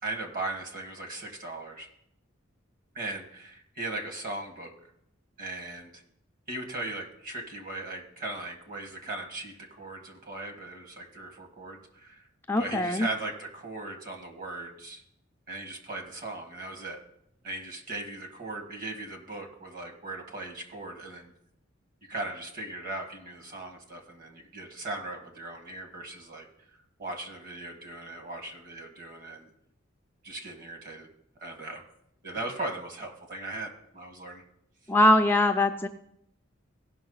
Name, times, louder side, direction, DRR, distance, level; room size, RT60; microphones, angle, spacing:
voice 1, 0.0-1.9 2.9-4.7 5.4-6.0 6.5-12.3 12.6-15.0 15.5-17.0 17.4-21.3 22.1-26.5 27.0-29.5 30.2-31.1 31.4-31.8 32.2-34.4, right 2 dB, 45° right, 3 dB, 1.8 m, -38 dB
voice 2, 12.5-13.1 34.9-35.9, left 1 dB, 10° left, 5 dB, 0.4 m, -22 dB
16.5 x 5.8 x 3.9 m, 0.74 s
head